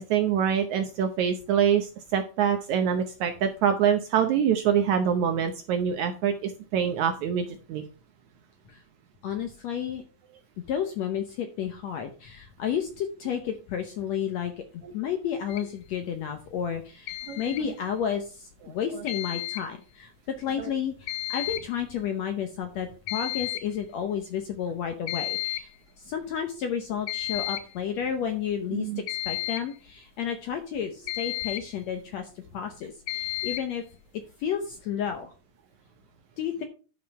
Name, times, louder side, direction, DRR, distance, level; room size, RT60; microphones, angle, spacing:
voice 1, 0.0-7.8 14.8-14.9 17.3-17.5 18.7-18.8 20.6-20.7 28.7-29.0, right 8 dB, 75° right, 6 dB, 1.8 m, -25 dB
voice 2, 9.2-10.0 10.7-25.7 26.0-33.8 34.4-35.3 36.4-36.6, left 8 dB, 70° left, 6 dB, 1.7 m, -32 dB
sound 1, 15.5-15.7 17.1-17.6 19.1-19.7 21.1-21.6 22.0-22.1 22.6-22.7 23.1-23.6 25.1-25.7 27.1-27.7 29.1-29.8 31.1-31.8 33.1-33.7, left 17 dB, 90° left, 1.7 m, -32 dB
10.5 x 5.6 x 4.6 m, 0.36 s
omnidirectional pair, 4.1 m